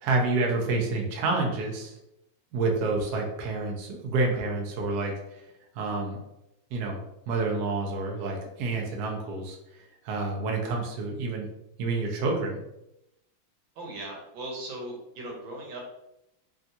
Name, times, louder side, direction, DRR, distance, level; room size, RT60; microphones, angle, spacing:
voice 1, 0.0-1.9 2.5-5.4 5.7-6.2 6.7-7.0 7.3-9.6 10.0-11.5 11.8-12.6, right 3 dB, 70° right, 0 dB, 1.0 m, -28 dB
voice 2, 13.8-15.8, right 1 dB, 85° right, -1 dB, 1.7 m, -38 dB
3.5 x 2.3 x 2.6 m, 0.87 s
omnidirectional pair, 2.1 m